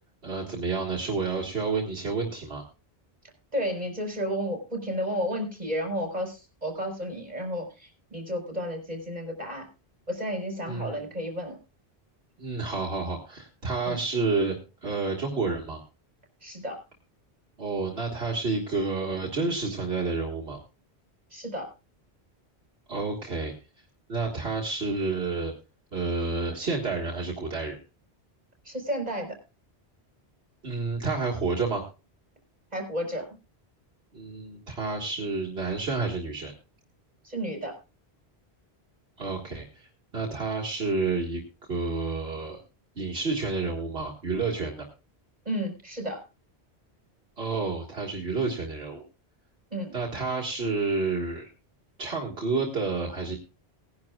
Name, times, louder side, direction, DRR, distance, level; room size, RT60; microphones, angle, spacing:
voice 1, 0.2-2.6 10.7-11.1 12.4-14.6 14.8-15.8 17.6-20.6 22.9-23.5 24.1-25.5 25.9-27.8 30.6-31.8 34.1-36.5 39.2-39.9 40.1-41.4 41.7-42.6 43.0-44.9 47.4-49.0 49.9-51.5 52.0-53.4, right 3 dB, 70° right, -1 dB, 2.0 m, -29 dB
voice 2, 3.5-9.7 10.1-11.6 13.8-14.0 16.4-16.8 21.3-21.7 28.6-29.3 32.7-33.3 37.2-37.8 45.4-46.2 49.7-49.9, equal, 35° right, 2 dB, 4.6 m, -32 dB
19.5 x 10.5 x 2.4 m, 0.31 s
omnidirectional pair, 1.1 m